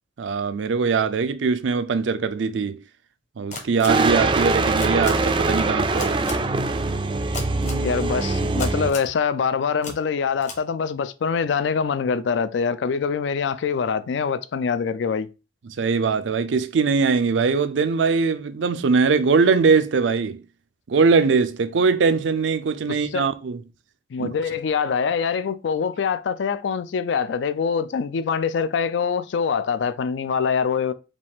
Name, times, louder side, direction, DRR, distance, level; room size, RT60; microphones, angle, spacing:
voice 1, 0.2-2.8 3.4-6.2 15.7-20.4 20.9-23.6 24.2-24.3, right 5 dB, 85° right, 0.4 m, -21 dB
sound 1, 3.5-3.9 4.8-5.1 6.0-6.3 7.3-7.8 8.6-9.1 9.8-9.9 10.4-10.6, left 3 dB, 40° left, 1.0 m, -32 dB
sound 2, 3.9-8.9, right 3 dB, 25° right, 0.3 m, -22 dB
voice 2, 7.8-15.3 22.9-23.3 24.1-30.9, left 6 dB, 75° left, 0.4 m, -24 dB
5.1 x 2.4 x 3.5 m
head